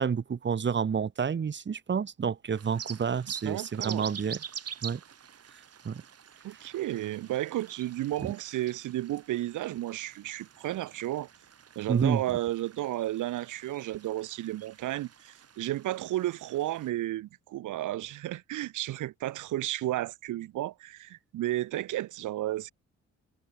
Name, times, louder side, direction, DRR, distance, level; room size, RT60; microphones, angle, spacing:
voice 1, 0.0-4.4 4.8-5.0 5.9-6.0 8.2-8.3 11.9-12.2, right 6 dB, 40° right, 1.8 m, -29 dB
sound 1, 2.5-16.9, right 8 dB, 55° right, 6.0 m, -46 dB
voice 2, 3.4-4.1 6.4-11.3 11.8-22.7, right 15 dB, 80° right, 2.1 m, -33 dB
cardioid pair, 90°, 30 cm